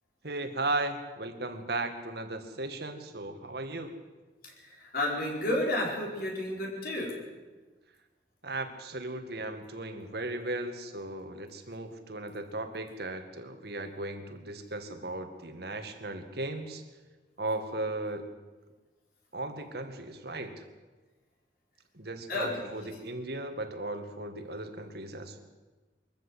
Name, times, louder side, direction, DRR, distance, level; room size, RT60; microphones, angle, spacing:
voice 1, 0.2-3.9 8.4-16.8 17.4-18.2 19.3-20.6 21.9-25.4, right 2 dB, 65° right, 7 dB, 2.1 m, -36 dB
voice 2, 4.4-7.2 22.3-22.7, left 1 dB, 55° left, -2 dB, 4.9 m, -31 dB
22.5 x 14.0 x 8.3 m, 1.3 s
head